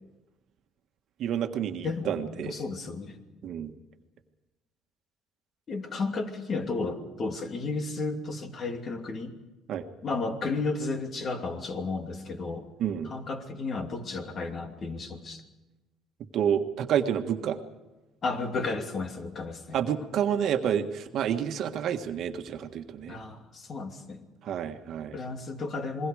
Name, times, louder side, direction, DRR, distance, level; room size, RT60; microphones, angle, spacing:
voice 1, 1.2-2.5 3.4-3.7 9.7-9.8 12.8-13.1 16.3-17.6 19.7-23.2 24.4-25.2, right 9 dB, 60° right, 7 dB, 1.6 m, -29 dB
voice 2, 1.8-3.2 3.4-3.5 5.7-9.3 10.0-12.7 13.0-15.4 18.2-19.8 23.1-24.3 25.1-26.1, left 3 dB, 40° left, 5 dB, 2.7 m, -33 dB
28.5 x 21.5 x 4.9 m, 1.1 s
cardioid pair, 120°, 0 cm